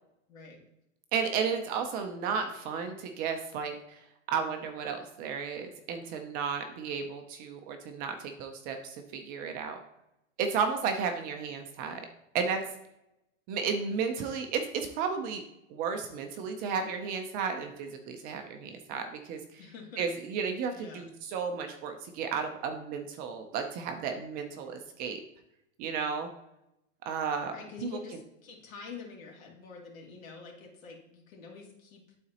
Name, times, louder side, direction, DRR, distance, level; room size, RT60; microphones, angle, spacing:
voice 1, 0.3-0.6 19.6-20.0 20.7-21.1 27.5-32.2, left 5 dB, 80° left, -1 dB, 2.4 m, -46 dB
voice 2, 1.1-4.0 4.3-9.8 10.4-12.0 12.3-12.6 13.5-15.4 15.7-19.6 20.0-25.2 25.8-26.3 27.1-27.6, right 6 dB, 25° right, 5 dB, 0.4 m, -33 dB
11.5 x 4.1 x 2.8 m, 0.85 s
hypercardioid pair, 140°, 40 cm